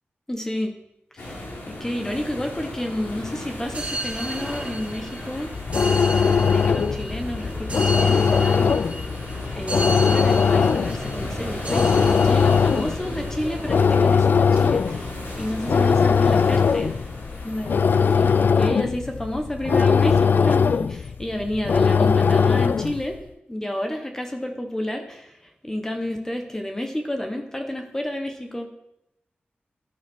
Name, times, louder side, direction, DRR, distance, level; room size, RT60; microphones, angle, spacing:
voice 1, 0.3-0.7 1.1-5.5 6.3-9.2 9.5-16.9 17.4-17.7 18.0-23.2 23.5-28.7, left 1 dB, 15° left, 4 dB, 1.2 m, -30 dB
sound 1, 1.2-18.4, left 1 dB, 90° left, 3.5 m, -36 dB
sound 2, 3.7-17.2, right 1 dB, 30° right, 1.9 m, -35 dB
sound 3, 5.5-23.1, left 6 dB, 60° left, 0.3 m, -20 dB
11.5 x 11.0 x 4.6 m, 0.86 s
wide cardioid pair, 125°, 4 cm